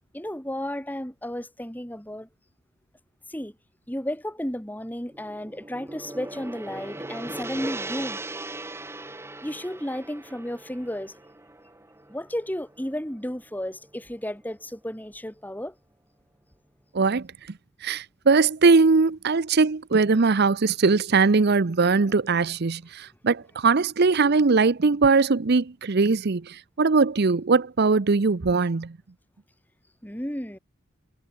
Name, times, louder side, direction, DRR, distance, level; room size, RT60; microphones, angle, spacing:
voice 1, 0.1-2.3 3.3-3.5 3.9-8.2 9.4-11.2 12.1-15.7 30.0-30.6, equal, 10° left, 2.9 m, -33 dB
Gong, 5.1-13.4, right 2 dB, 10° right, 1.3 m, -39 dB
voice 2, 16.9-17.3 17.8-29.0, right 4 dB, 50° right, 0.6 m, -21 dB
head